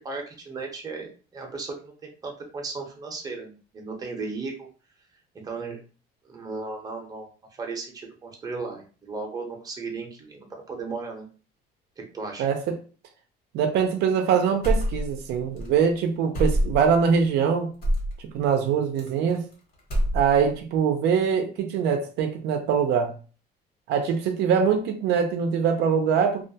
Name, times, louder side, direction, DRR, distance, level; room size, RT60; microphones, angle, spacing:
voice 1, 0.0-4.7 5.3-5.8 6.2-7.3 7.6-11.3 12.0-12.5, right 4 dB, 20° right, 0.6 m, -35 dB
voice 2, 12.4-12.8 13.5-17.7 18.3-19.5 20.1-23.1 23.9-26.4, right 7 dB, 75° right, 0.4 m, -23 dB
sound 1, 14.6-15.3 15.5-15.7 16.3-17.0 17.8-18.1 19.0-19.5 19.8-20.5, equal, 55° left, 1.2 m, -25 dB
2.3 x 2.1 x 2.7 m
cardioid pair, 140°, 17 cm